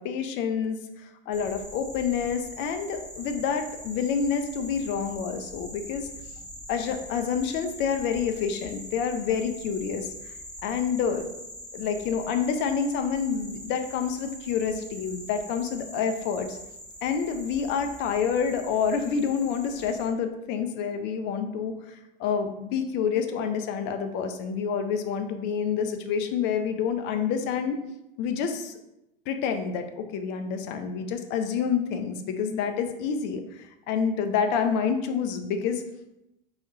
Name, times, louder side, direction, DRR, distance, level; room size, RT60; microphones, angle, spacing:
voice 1, 0.0-6.1 6.7-10.3 10.6-11.3 11.7-16.6 17.0-27.8 28.2-28.7 29.3-35.8, left 6 dB, 40° left, 6 dB, 0.4 m, -28 dB
sound 1, 1.3-20.1, equal, 5° left, 0.9 m, -43 dB
2.3 x 2.1 x 3.8 m, 0.88 s
hypercardioid pair, 85°, 29 cm